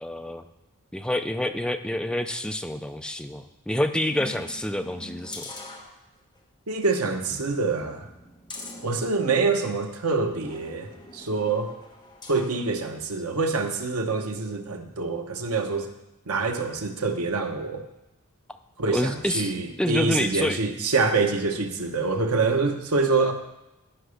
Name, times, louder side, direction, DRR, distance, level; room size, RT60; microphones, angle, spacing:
voice 1, 0.0-0.4 0.9-5.5 18.9-19.5 19.8-20.6, left 1 dB, 5° left, 7 dB, 0.4 m, -27 dB
sound 1, 4.2-6.4 6.8-6.9 7.3-9.8 10.4-12.6 13.1-13.2, left 1 dB, 20° left, 1.3 m, -44 dB
voice 2, 6.7-8.1 8.8-11.7 12.3-15.9 16.3-17.8 18.8-23.3, right 4 dB, 85° right, 5 dB, 1.0 m, -26 dB
10.0 x 5.8 x 6.4 m, 0.96 s
head